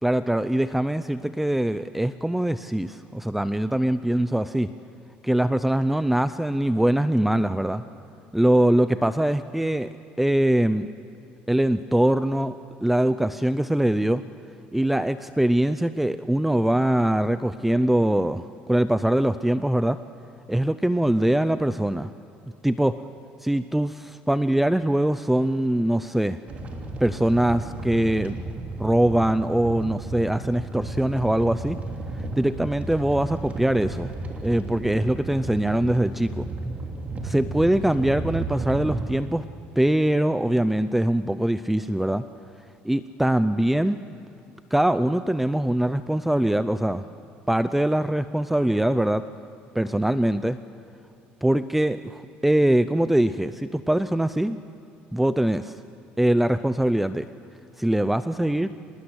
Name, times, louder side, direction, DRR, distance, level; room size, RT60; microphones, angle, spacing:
voice 1, 0.0-4.7 5.2-7.8 8.3-9.9 10.2-10.9 11.5-14.2 14.7-20.0 20.5-22.1 22.6-23.0 23.4-26.4 27.0-28.4 28.8-31.8 32.1-34.1 34.4-36.5 37.2-39.4 39.8-42.2 42.8-44.0 44.7-47.0 47.5-49.2 49.7-50.6 51.4-54.6 55.1-55.8 56.2-57.2 57.8-58.7, right 1 dB, 5° right, 12 dB, 0.5 m, -22 dB
sound 1, 26.5-39.1, right 2 dB, 35° right, 3.2 m, -33 dB
25.5 x 20.0 x 8.1 m, 2.7 s
cardioid pair, 120°, 4 cm